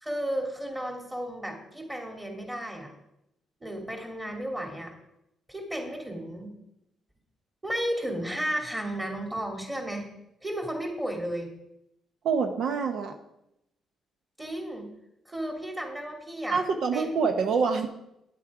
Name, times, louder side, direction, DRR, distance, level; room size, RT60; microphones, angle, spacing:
voice 1, 0.0-2.9 3.6-4.9 5.5-6.5 7.6-10.1 10.4-11.5 14.4-14.9 15.2-16.6 16.9-17.2, right 1 dB, 15° right, 2 dB, 2.7 m, -33 dB
voice 2, 12.2-13.1 16.5-17.9, right 5 dB, 70° right, 6 dB, 0.9 m, -26 dB
9.5 x 8.3 x 4.9 m, 0.83 s
cardioid pair, 85°, 0 cm